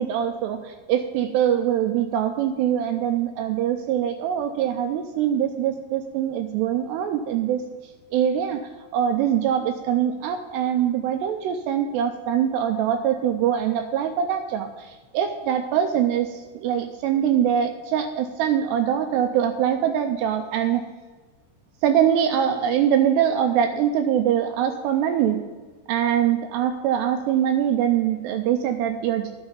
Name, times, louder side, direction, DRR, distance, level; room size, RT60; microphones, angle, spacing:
voice 1, 0.0-7.6 8.1-8.6 8.9-20.8 21.8-25.4 25.9-29.3, right 9 dB, 85° right, 6 dB, 2.5 m, -23 dB
13.0 x 8.1 x 5.2 m, 1.4 s
omnidirectional pair, 5.3 m